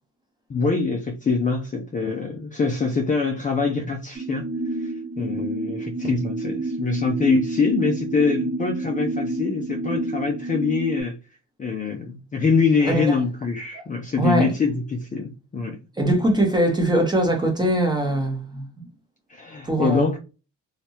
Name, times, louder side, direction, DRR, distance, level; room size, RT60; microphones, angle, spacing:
voice 1, 0.5-4.5 4.8-11.1 11.6-15.8 19.3-20.2, left 4 dB, 25° left, 0.5 m, -24 dB
sound 1, 4.1-11.0, right 2 dB, 75° right, 1.8 m, -29 dB
voice 2, 14.2-14.5 16.0-18.7 19.6-20.1, right 1 dB, 10° right, 0.8 m, -21 dB
3.4 x 2.8 x 2.8 m
cardioid pair, 160°, 34 cm